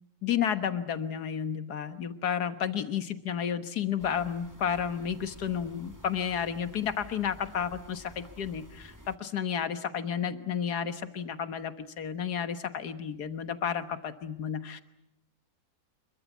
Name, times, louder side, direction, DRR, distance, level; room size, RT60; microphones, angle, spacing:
voice 1, 0.2-14.8, left 8 dB, 80° left, 9 dB, 1.9 m, -32 dB
sound 1, 4.0-9.2, right 1 dB, 10° right, 1.6 m, -52 dB
26.5 x 22.5 x 8.3 m, 0.81 s
omnidirectional pair, 1.7 m